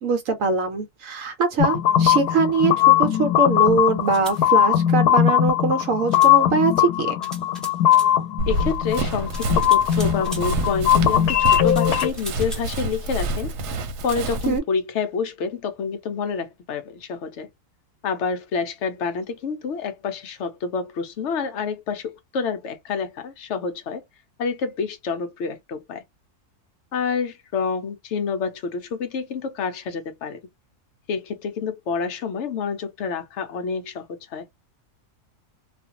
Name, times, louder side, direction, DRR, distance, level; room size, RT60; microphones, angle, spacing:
voice 1, 0.0-7.1 14.5-14.6, right 4 dB, 65° right, 1.0 m, -22 dB
sound 1, 1.6-12.1, left 11 dB, 90° left, 1.2 m, -19 dB
sound 2, 4.1-4.4 6.1-6.3 7.2-8.1 9.3-10.5 11.4-12.7, equal, ahead, 0.6 m, -39 dB
Run, 8.4-14.6, right 1 dB, 85° right, 1.2 m, -28 dB
voice 2, 8.5-17.5 18.0-24.0 24.4-26.0 26.9-30.4 31.1-34.5, left 5 dB, 65° left, 0.7 m, -28 dB
2.5 x 2.4 x 2.7 m
omnidirectional pair, 1.6 m